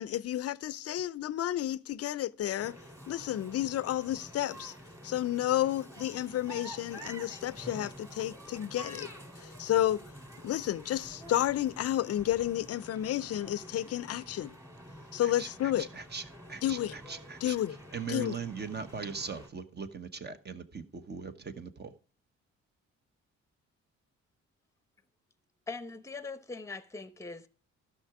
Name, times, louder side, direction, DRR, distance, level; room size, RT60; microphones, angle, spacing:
voice 1, 0.0-2.8 3.1-4.7 5.0-9.1 9.4-10.0 10.4-14.6 15.1-15.9 16.6-16.9 17.4-17.8 18.1-18.4, left 12 dB, 55° left, 0.5 m, -31 dB
sound 1, 2.6-19.5, right 1 dB, 10° right, 2.4 m, -49 dB
voice 2, 15.2-16.2 16.5-17.6 17.9-21.9, right 5 dB, 35° right, 1.1 m, -40 dB
voice 3, 25.7-27.5, left 4 dB, 10° left, 0.9 m, -41 dB
12.5 x 6.0 x 4.7 m
cardioid pair, 90°, 30 cm